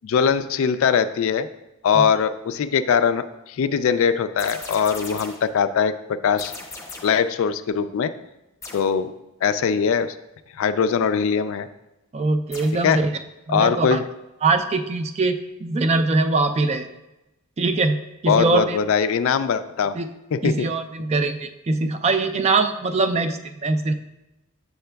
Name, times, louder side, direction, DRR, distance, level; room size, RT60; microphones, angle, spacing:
voice 1, 0.0-1.5 1.8-6.5 7.0-8.1 8.7-9.1 9.4-10.2 10.6-11.7 12.8-13.0 13.5-14.0 18.3-19.9 20.3-20.7, left 6 dB, 65° left, 12 dB, 0.3 m, -21 dB
sound 1, 4.4-5.5 6.4-7.3 8.6-9.0 12.5-12.9, left 3 dB, 15° left, 0.8 m, -38 dB
voice 2, 12.1-13.1 13.5-14.0 14.4-16.9 17.6-18.8 19.9-20.1 20.4-23.9, right 3 dB, 30° right, 9 dB, 0.3 m, -22 dB
6.9 x 6.6 x 2.3 m, 0.95 s
head